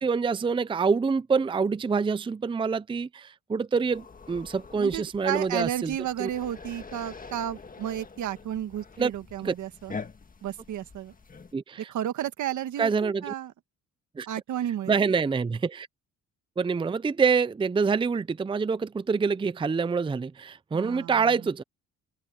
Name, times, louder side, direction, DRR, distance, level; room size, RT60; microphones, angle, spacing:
voice 1, 0.0-5.9 6.2-6.3 9.0-9.1 9.4-9.5 11.5-11.9 12.8-13.3 14.2-14.3 14.9-15.9 16.6-21.6, right 5 dB, 15° right, 0.5 m, -26 dB
sound 1, 3.9-11.5, left 4 dB, 30° left, 1.6 m, -45 dB
voice 2, 4.7-9.9 10.4-11.1 11.9-13.5 14.3-15.0 20.7-21.3, right 11 dB, 75° right, 1.6 m, -32 dB
open air
cardioid pair, 90°, 30 cm